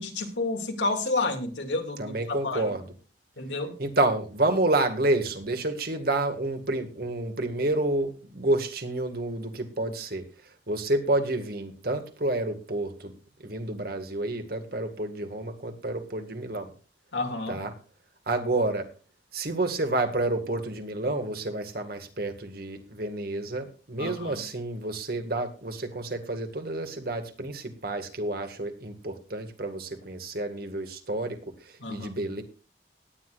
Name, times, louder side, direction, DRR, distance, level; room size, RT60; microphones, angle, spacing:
voice 1, 0.0-2.6 3.4-3.8 17.1-17.6 24.0-24.4 31.8-32.1, left 3 dB, 90° left, 3 dB, 2.5 m, -30 dB
voice 2, 2.0-2.9 3.8-10.3 10.7-13.1 13.4-16.7 17.5-17.7 18.3-18.9 19.3-32.4, right 2 dB, 55° right, 6 dB, 1.9 m, -29 dB
18.0 x 9.8 x 2.5 m, 0.35 s
head